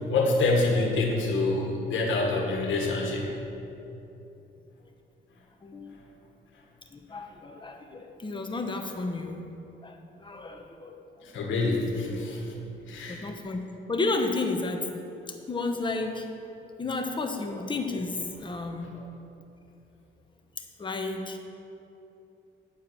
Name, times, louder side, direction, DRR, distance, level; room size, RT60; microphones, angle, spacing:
voice 1, 0.1-3.3 11.3-12.4 12.9-13.2, left 2 dB, 75° left, 0 dB, 1.7 m, -26 dB
voice 2, 5.6-6.1 6.9-9.5 9.8-11.0 12.5-12.6 13.1-14.9 15.3-16.3 16.8-19.1 20.6-21.4, left 3 dB, 25° left, 4 dB, 1.0 m, -32 dB
8.8 x 4.7 x 7.5 m, 2.9 s
cardioid pair, 90°, 20 cm